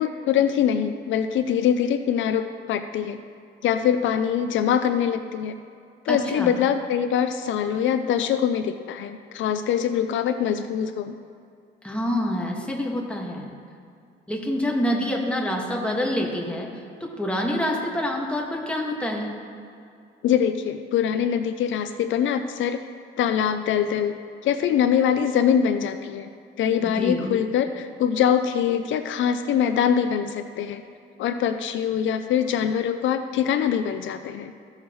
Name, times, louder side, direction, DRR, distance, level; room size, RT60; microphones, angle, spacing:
voice 1, 0.0-3.2 3.6-5.5 6.1-11.1 20.2-22.8 23.2-24.1 24.4-26.3 26.6-30.8 31.2-34.5, left 8 dB, 75° left, 9 dB, 0.5 m, -23 dB
voice 2, 6.1-6.5 11.8-13.5 14.3-16.7 17.0-19.3 26.8-27.3, left 1 dB, 5° left, -1 dB, 1.7 m, -27 dB
15.5 x 6.5 x 3.1 m, 2.4 s
cardioid pair, 90°, 20 cm